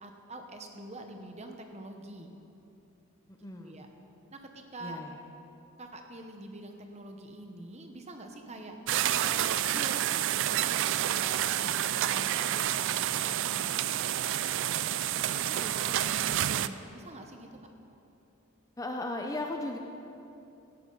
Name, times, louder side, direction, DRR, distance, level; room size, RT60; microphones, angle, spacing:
voice 1, 0.0-2.3 3.6-3.9 4.3-5.0 5.8-8.8 9.3-14.1 15.3-17.5, right 1 dB, 30° right, 4 dB, 1.0 m, -45 dB
voice 2, 3.4-3.8 4.8-5.1 18.8-19.8, left 2 dB, 15° left, 3 dB, 0.6 m, -36 dB
sound 1, 8.9-16.7, right 12 dB, 55° right, 0.3 m, -29 dB
16.5 x 11.0 x 4.0 m, 2.8 s
head